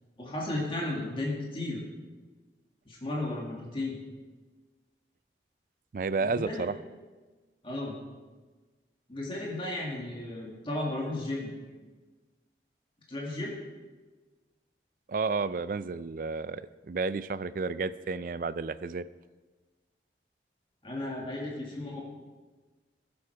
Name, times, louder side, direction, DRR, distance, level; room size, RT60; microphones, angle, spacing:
voice 1, 0.2-1.8 2.9-4.0 6.2-6.7 7.6-8.0 9.1-11.5 13.1-13.6 20.8-22.0, left 2 dB, 30° left, -3 dB, 2.0 m, -34 dB
voice 2, 5.9-6.7 15.1-19.1, right 4 dB, 50° right, 15 dB, 0.4 m, -31 dB
15.0 x 7.8 x 4.6 m, 1.3 s
head